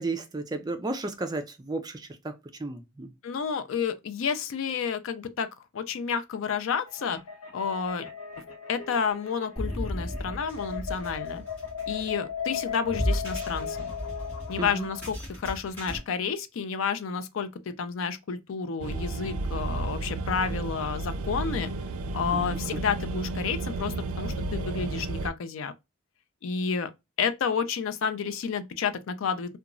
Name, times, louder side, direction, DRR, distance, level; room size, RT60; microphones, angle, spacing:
voice 1, 0.0-2.3 2.6-3.1 14.6-14.9 22.3-22.8, right 2 dB, 20° right, 0.3 m, -33 dB
voice 2, 3.2-7.2 7.5-8.1 8.7-11.4 11.9-13.9 14.5-21.7 22.1-25.7 26.4-26.9 27.2-29.6, left 6 dB, 70° left, 0.4 m, -30 dB
sound 1, 6.9-15.0, left 7 dB, 90° left, 1.0 m, -37 dB
sound 2, 9.6-16.0, left 1 dB, 10° left, 1.5 m, -35 dB
sound 3, 18.8-25.3, right 2 dB, 90° right, 0.4 m, -32 dB
2.9 x 2.3 x 2.4 m
head